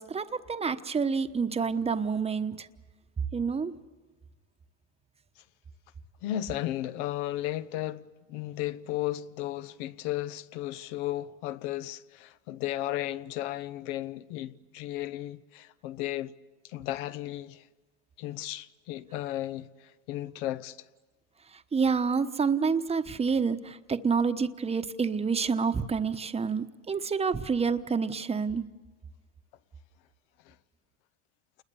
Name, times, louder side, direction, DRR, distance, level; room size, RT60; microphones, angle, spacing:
voice 1, 0.0-2.7 3.3-3.7 21.7-28.7, right 5 dB, 15° right, 1.1 m, -28 dB
voice 2, 6.2-16.3 16.6-17.7 18.2-20.8 30.5-30.6, left 14 dB, 70° left, 1.0 m, -34 dB
28.5 x 21.0 x 7.0 m
supercardioid pair, 115°, 37 cm